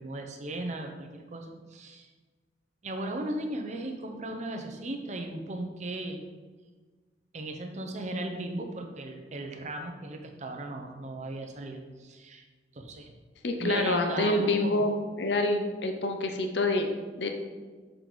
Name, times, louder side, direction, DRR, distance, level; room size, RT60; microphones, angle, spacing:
voice 1, 0.0-2.1 2.8-6.2 7.3-12.4 12.7-13.1 13.6-14.8, right 2 dB, 40° right, 3 dB, 0.7 m, -36 dB
voice 2, 13.4-14.9 15.2-17.4, left 2 dB, 65° left, 4 dB, 0.6 m, -27 dB
6.4 x 4.6 x 4.0 m, 1.4 s
head